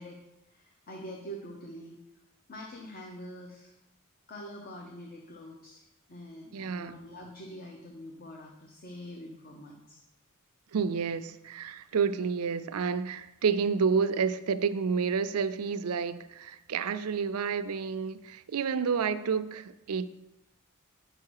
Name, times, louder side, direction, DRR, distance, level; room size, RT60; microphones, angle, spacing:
voice 1, 0.0-2.0 2.5-3.8 4.3-10.0, equal, 45° left, 0.9 m, -45 dB
voice 2, 6.5-6.9 10.7-20.1, right 6 dB, 85° right, 0.5 m, -29 dB
9.0 x 5.7 x 4.7 m
head